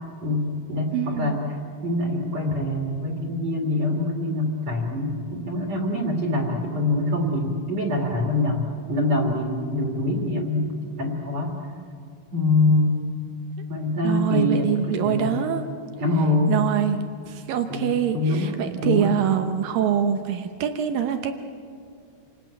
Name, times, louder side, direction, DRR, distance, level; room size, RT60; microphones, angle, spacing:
voice 1, 0.2-1.6 1.8-10.7 11.0-11.6 12.3-13.0 13.7-15.5 16.0-16.5 17.7-19.1, left 2 dB, 45° right, 0 dB, 2.9 m, -24 dB
voice 2, 0.9-1.4 14.0-15.7 16.5-21.3, right 9 dB, 80° right, 7 dB, 2.0 m, -24 dB
28.0 x 18.5 x 8.0 m, 2.3 s
omnidirectional pair, 5.4 m